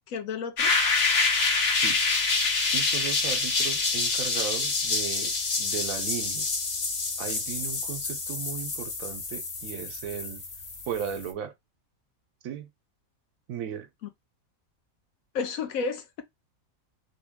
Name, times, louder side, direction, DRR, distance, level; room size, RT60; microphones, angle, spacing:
voice 1, 0.1-0.7 15.3-16.2, left 5 dB, 75° left, 1.1 m, -31 dB
sound 1, 0.6-11.3, left 4 dB, 50° left, 1.1 m, -27 dB
voice 2, 2.7-6.5 7.2-10.4 10.9-11.5 12.4-12.7 13.5-13.9, right 8 dB, 80° right, 1.0 m, -36 dB
3.7 x 2.2 x 3.4 m
omnidirectional pair, 1.5 m